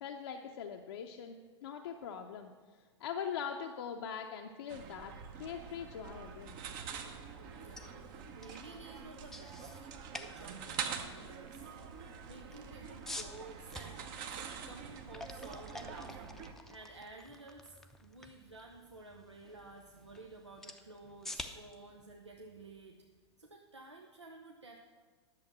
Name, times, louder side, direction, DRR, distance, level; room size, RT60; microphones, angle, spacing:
voice 1, 0.0-1.4 1.6-2.5 3.0-6.6, left 7 dB, 60° left, 2 dB, 0.7 m, -42 dB
sound 1, 4.7-16.5, right 6 dB, 45° right, 1.0 m, -45 dB
sound 2, 7.5-23.5, left 1 dB, 5° left, 0.6 m, -51 dB
voice 2, 7.5-9.9 10.3-14.0 14.3-16.4 16.7-23.0 23.4-24.8, right 2 dB, 85° right, 0 dB, 0.8 m, -53 dB
11.0 x 7.2 x 6.0 m, 1.5 s
figure-of-eight pair, 95°, 15 cm